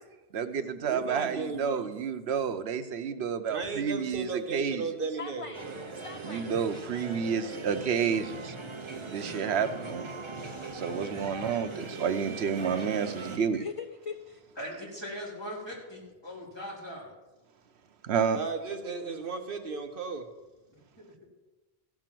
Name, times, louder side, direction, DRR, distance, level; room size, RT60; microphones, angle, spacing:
voice 1, 0.3-4.8 6.3-8.6 9.1-10.1 10.7-13.6 18.0-18.4, right 7 dB, 85° right, 10 dB, 1.0 m, -30 dB
voice 2, 0.8-1.9 3.5-5.8 18.3-20.3, right 4 dB, 60° right, 5 dB, 1.1 m, -35 dB
voice 3, 5.2-6.5 13.4-14.4, left 6 dB, 45° left, 8 dB, 0.5 m, -41 dB
sound 1, 5.5-13.4, right 3 dB, 30° right, 0.9 m, -40 dB
voice 4, 14.6-17.1 21.0-21.1, equal, 25° left, -5 dB, 3.9 m, -40 dB
15.0 x 6.1 x 7.6 m, 1.1 s
omnidirectional pair, 1.1 m